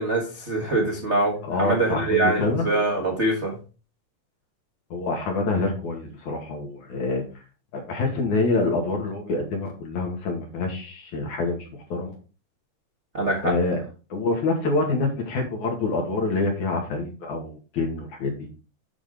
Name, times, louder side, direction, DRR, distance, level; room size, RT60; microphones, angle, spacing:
voice 1, 0.0-3.6 13.1-13.5, right 2 dB, 45° right, 0 dB, 0.9 m, -24 dB
voice 2, 1.4-2.6 4.9-7.2 7.7-12.1 13.4-13.8 14.1-18.3, left 3 dB, 65° left, 2 dB, 3.4 m, -26 dB
8.8 x 6.1 x 3.7 m, 0.34 s
omnidirectional pair, 3.7 m